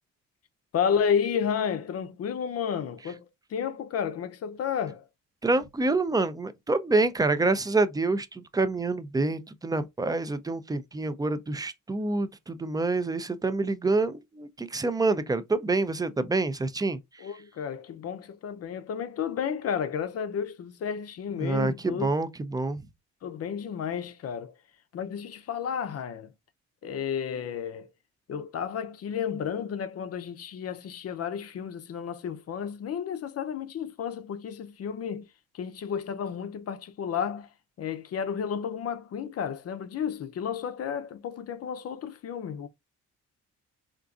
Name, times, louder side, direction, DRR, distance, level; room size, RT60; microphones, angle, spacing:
voice 1, 0.7-5.1 17.2-22.1 23.2-24.5 24.9-26.3 26.8-27.9 28.3-35.3 35.5-37.5 37.8-42.7, left 7 dB, 55° left, 0.6 m, -32 dB
voice 2, 5.4-17.0 21.4-22.8, right 3 dB, 15° right, 0.4 m, -27 dB
3.7 x 2.4 x 2.4 m
cardioid pair, 90°, 30 cm